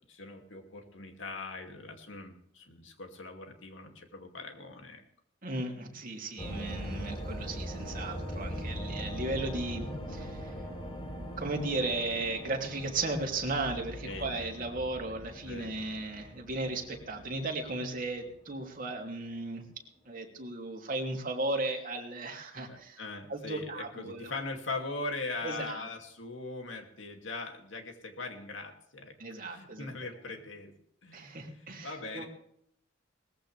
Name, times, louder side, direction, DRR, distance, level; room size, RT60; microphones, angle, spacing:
voice 1, 0.1-5.0 14.0-14.3 15.4-15.8 22.7-29.1 29.4-30.7 31.0-32.2, left 3 dB, 65° left, 4 dB, 2.6 m, -41 dB
voice 2, 5.4-10.5 11.4-19.7 20.0-23.0 23.3-24.3 25.4-25.9 29.2-29.9 31.1-32.2, right 2 dB, 45° right, 1 dB, 2.8 m, -35 dB
sound 1, 6.4-18.5, equal, 30° left, 3.2 m, -41 dB
19.5 x 15.0 x 3.4 m, 0.71 s
head